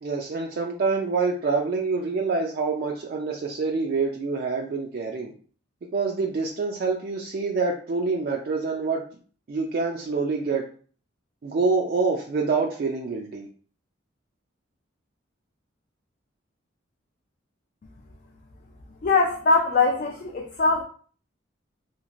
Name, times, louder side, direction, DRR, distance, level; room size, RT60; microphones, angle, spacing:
voice 1, 0.0-5.3 5.9-9.0 9.5-10.6 11.4-13.5, right 4 dB, 50° right, 0 dB, 0.3 m, -26 dB
voice 2, 19.0-20.8, left 3 dB, 45° left, 1 dB, 0.3 m, -21 dB
3.0 x 2.4 x 2.5 m, 0.43 s
head